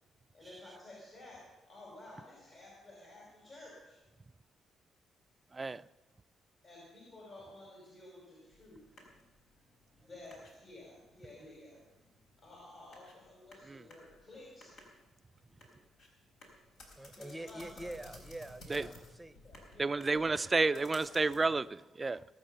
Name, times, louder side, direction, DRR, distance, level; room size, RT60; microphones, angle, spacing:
voice 1, 0.3-4.0 6.6-8.8 9.9-11.8 12.4-14.7 17.1-17.9 19.4-21.1, left 2 dB, 50° left, 5.3 m, -53 dB
voice 2, 5.5-5.8 13.7-13.8 18.7-18.9 19.8-22.3, right 3 dB, 25° right, 0.4 m, -31 dB
sound 1, 8.5-21.6, left 1 dB, 75° left, 4.2 m, -57 dB
voice 3, 17.0-19.4, right 1 dB, 5° right, 0.8 m, -45 dB
18.5 x 8.6 x 6.8 m
cardioid pair, 90°, 0 cm